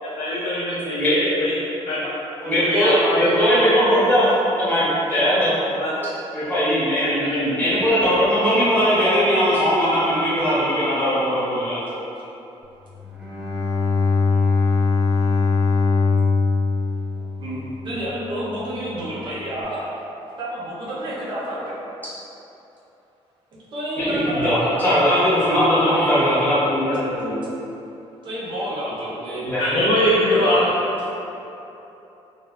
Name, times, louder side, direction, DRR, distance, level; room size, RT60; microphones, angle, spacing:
voice 1, 0.0-1.5 1.9-2.1 2.4-3.7 5.7-6.1 7.0-7.7 26.4-27.4 29.6-30.7, left 1 dB, 65° left, -9 dB, 0.6 m, -23 dB
voice 2, 2.5-4.3 4.6-5.5 6.3-7.1 7.6-11.8 24.0-26.6 29.4-29.6, equal, 15° left, -13 dB, 1.2 m, -19 dB
Bowed string instrument, 12.9-18.1, left 4 dB, 5° right, 0.7 m, -21 dB
voice 3, 17.4-20.0 20.4-21.7 23.5-26.5 28.2-29.5 30.0-30.6, equal, 45° right, -8 dB, 0.9 m, -30 dB
4.0 x 2.6 x 2.4 m, 3.0 s
cardioid pair, 160°, 11 cm